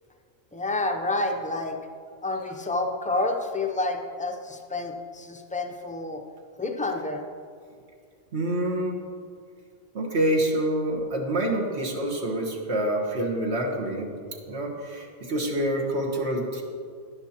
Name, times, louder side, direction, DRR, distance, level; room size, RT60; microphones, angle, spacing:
voice 1, 0.5-1.8 2.2-6.2 6.6-7.2, left 2 dB, 10° left, 3 dB, 0.4 m, -29 dB
voice 2, 8.3-9.0 9.9-14.2 14.5-16.6, right 1 dB, 70° right, -1 dB, 1.6 m, -27 dB
11.0 x 10.5 x 2.9 m, 2.2 s
omnidirectional pair, 1.1 m